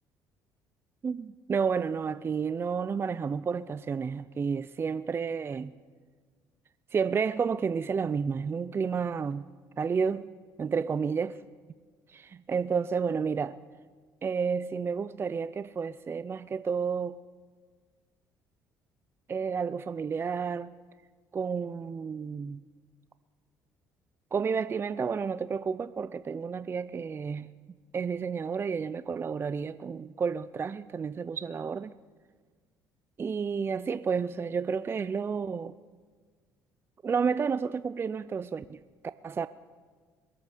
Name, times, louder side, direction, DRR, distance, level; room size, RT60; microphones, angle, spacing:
voice 1, 1.0-5.7 6.9-9.5 9.8-10.3 10.6-11.4 12.1-13.6 14.2-17.2 19.3-20.7 21.3-22.6 24.3-27.5 27.9-31.9 33.2-35.7 37.0-38.8 39.2-39.5, right 6 dB, 30° right, 0.4 m, -31 dB
22.0 x 8.5 x 6.7 m
supercardioid pair, 85°, 8 cm